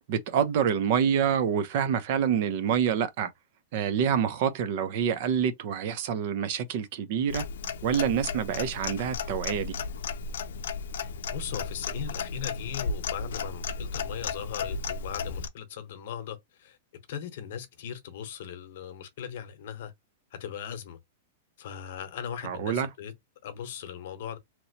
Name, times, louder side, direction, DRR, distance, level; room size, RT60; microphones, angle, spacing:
voice 1, 0.1-3.3 3.7-7.4 7.8-9.8 22.4-22.9, right 8 dB, 45° right, 0.5 m, -27 dB
Clock, 7.3-15.5, left 5 dB, 85° left, 0.5 m, -34 dB
voice 2, 11.0-16.8 17.1-19.9 20.3-21.0 21.6-23.1 23.4-24.4, left 8 dB, 55° left, 0.9 m, -38 dB
3.0 x 2.8 x 2.8 m
supercardioid pair, 170°, 0 cm